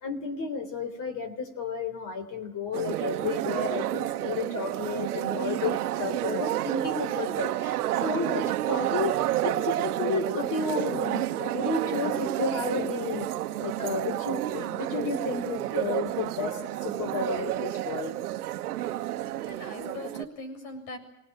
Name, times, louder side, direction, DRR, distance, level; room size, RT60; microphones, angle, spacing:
voice 1, 0.0-13.3 13.6-18.1, left 4 dB, 45° left, 9 dB, 3.6 m, -32 dB
sound 1, 2.7-20.2, right 14 dB, 80° right, 1.2 m, -30 dB
voice 2, 19.2-21.0, left 2 dB, 65° left, 7 dB, 7.5 m, -41 dB
25.0 x 19.0 x 9.0 m, 0.89 s
hypercardioid pair, 95°, 44 cm